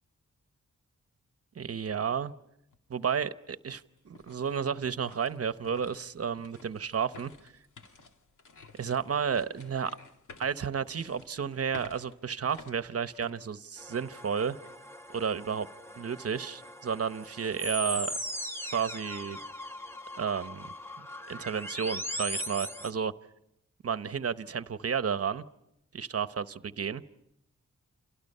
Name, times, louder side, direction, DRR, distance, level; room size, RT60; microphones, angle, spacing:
voice 1, 1.6-2.3 2.9-7.3 8.8-9.9 10.4-14.6 15.1-15.7 15.9-18.1 18.7-19.4 20.2-20.7 21.3-23.1 23.8-25.5 25.9-27.0, right 7 dB, 50° right, 0.9 m, -32 dB
sound 1, 2.7-2.8 3.3-14.2 14.6-14.8 15.4-15.7, left 4 dB, 90° left, 2.4 m, -53 dB
sound 2, 13.8-22.9, equal, 10° left, 1.2 m, -39 dB
29.5 x 28.0 x 5.5 m
wide cardioid pair, 115°, 30 cm